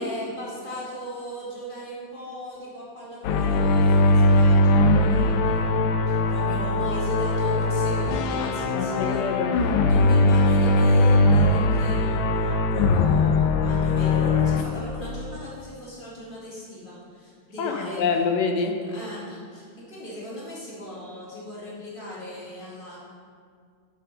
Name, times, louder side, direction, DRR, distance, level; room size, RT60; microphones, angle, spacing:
voice 1, 0.0-5.6 6.1-9.3 9.8-18.0 18.9-23.0, equal, 25° left, -7 dB, 2.1 m, -37 dB
sound 1, 3.2-14.6, left 2 dB, 85° left, 1.4 m, -20 dB
voice 2, 8.7-9.6 17.6-18.8, left 5 dB, 70° left, 5 dB, 1.2 m, -26 dB
8.9 x 4.4 x 5.4 m, 2.1 s
omnidirectional pair, 2.1 m